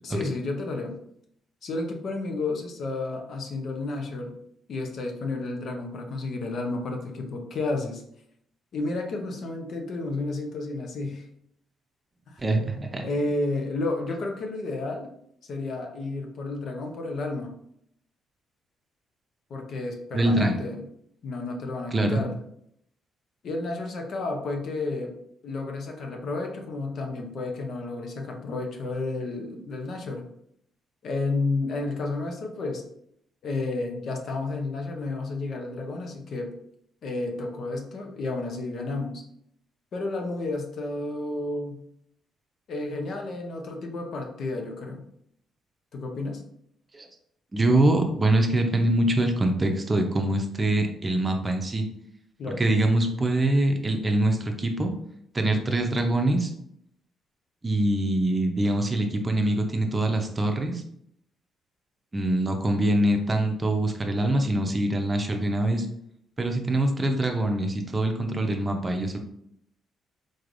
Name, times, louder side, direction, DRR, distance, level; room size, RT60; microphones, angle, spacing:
voice 1, 0.0-1.0 1.6-4.3 4.7-8.0 8.7-11.3 12.3-12.4 13.0-15.1 15.4-17.5 19.5-20.8 21.2-22.3 23.4-25.1 25.4-30.2 31.0-32.8 33.4-36.5 37.0-39.2 39.9-41.8 42.7-45.0 45.9-46.4 52.4-52.7, left 2 dB, 60° left, 3 dB, 0.7 m, -31 dB
voice 2, 12.4-13.0 20.1-20.5 21.9-22.2 46.9-47.1 47.5-51.8 52.6-54.9 55.3-56.5 57.6-60.8 62.1-65.9 66.4-69.2, right 1 dB, 25° right, 4 dB, 0.6 m, -24 dB
3.9 x 3.2 x 2.5 m, 0.71 s
cardioid pair, 90°, 0 cm